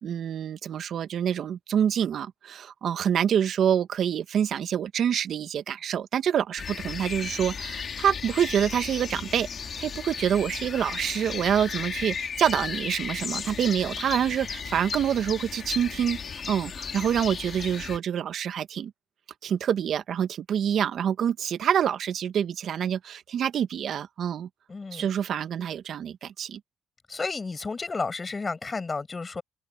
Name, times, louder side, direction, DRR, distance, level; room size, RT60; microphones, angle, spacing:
voice 1, 0.0-9.5 9.8-18.9 19.4-24.5 24.9-26.6, right 9 dB, 65° right, 1.4 m, -26 dB
sound 1, 6.6-18.0, left 6 dB, 50° left, 3.4 m, -35 dB
voice 2, 24.7-25.1 27.1-29.4, left 4 dB, 30° left, 7.4 m, -32 dB
supercardioid pair, 65°, 0 cm